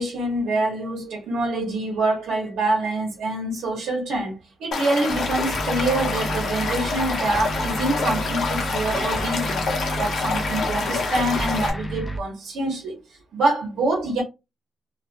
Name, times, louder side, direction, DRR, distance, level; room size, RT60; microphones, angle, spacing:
voice 1, 0.0-9.6 10.0-13.0 13.3-14.2, right 2 dB, 70° right, 0.9 m, -25 dB
Stream / Liquid, 4.7-11.7, left 4 dB, 55° left, 0.7 m, -27 dB
sound 1, 5.1-12.2, right 1 dB, 10° left, 0.3 m, -31 dB
2.4 x 2.3 x 2.5 m
cardioid pair, 160°, 0 cm